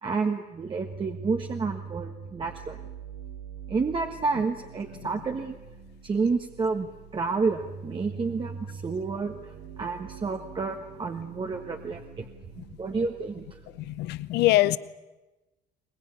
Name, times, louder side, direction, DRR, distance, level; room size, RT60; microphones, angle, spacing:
voice 1, 0.0-2.8 3.7-5.5 6.0-9.5 9.8-12.2 12.8-13.5, right 4 dB, 30° right, 3 dB, 1.5 m, -30 dB
sound 1, 0.6-14.2, right 5 dB, 65° right, 1.6 m, -44 dB
voice 2, 13.8-14.8, left 16 dB, 80° left, 17 dB, 0.7 m, -23 dB
23.0 x 20.0 x 9.8 m, 1.1 s
cardioid pair, 110°, 17 cm